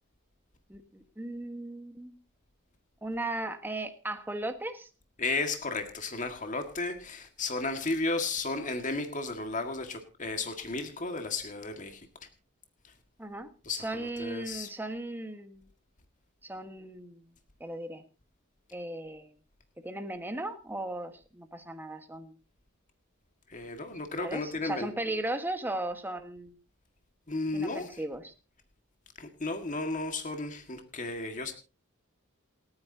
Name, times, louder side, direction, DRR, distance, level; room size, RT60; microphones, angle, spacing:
voice 1, 0.7-2.2 3.0-4.9 13.2-13.5 13.8-15.7 16.4-17.3 17.6-18.0 18.7-19.3 19.8-22.3 24.2-26.5 27.5-28.3, right 1 dB, 10° right, 7 dB, 1.4 m, -37 dB
voice 2, 5.2-12.3 12.8-12.9 13.6-14.7 23.5-24.9 27.3-28.0 29.2-31.5, left 3 dB, 35° left, 6 dB, 1.8 m, -34 dB
28.0 x 9.6 x 2.8 m, 0.33 s
head